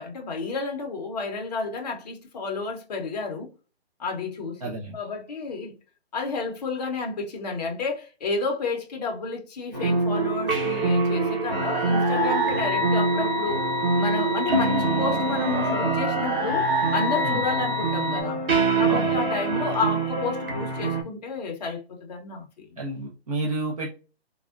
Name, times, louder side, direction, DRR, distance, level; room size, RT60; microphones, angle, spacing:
voice 1, 0.0-3.5 4.0-5.7 6.1-13.6 14.0-16.7 16.9-18.4 18.8-22.7, left 3 dB, 40° left, 0.6 m, -31 dB
voice 2, 4.6-5.0 17.2-17.4 18.9-19.2 22.8-23.9, right 2 dB, 35° right, 0.5 m, -30 dB
sound 1, 9.7-21.0, right 3 dB, 55° right, 1.2 m, -25 dB
sound 2, 11.5-18.2, left 2 dB, 15° right, 1.1 m, -28 dB
3.4 x 2.1 x 2.3 m
hypercardioid pair, 160°, 33 cm